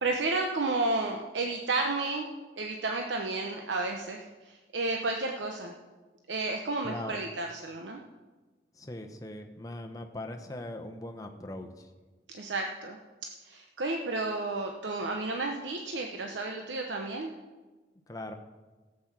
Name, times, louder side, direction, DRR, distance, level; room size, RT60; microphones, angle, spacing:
voice 1, 0.0-2.3 2.6-5.7 6.3-8.0 12.3-13.0 13.4-17.3, right 2 dB, 90° right, 2 dB, 0.9 m, -32 dB
voice 2, 6.8-7.2 8.8-11.9 18.1-18.3, left 1 dB, 20° left, 4 dB, 0.9 m, -40 dB
14.0 x 7.9 x 6.0 m, 1.3 s
head